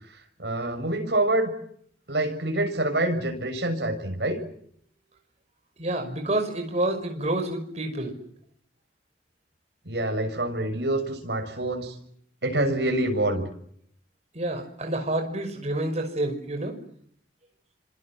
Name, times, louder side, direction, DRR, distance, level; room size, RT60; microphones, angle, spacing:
voice 1, 0.4-1.5 2.1-4.4 9.8-11.9 12.4-13.4, right 1 dB, 70° right, 4 dB, 6.9 m, -26 dB
voice 2, 5.8-8.1 14.3-16.8, right 1 dB, 40° right, 5 dB, 5.6 m, -28 dB
29.0 x 26.0 x 7.8 m, 0.66 s
head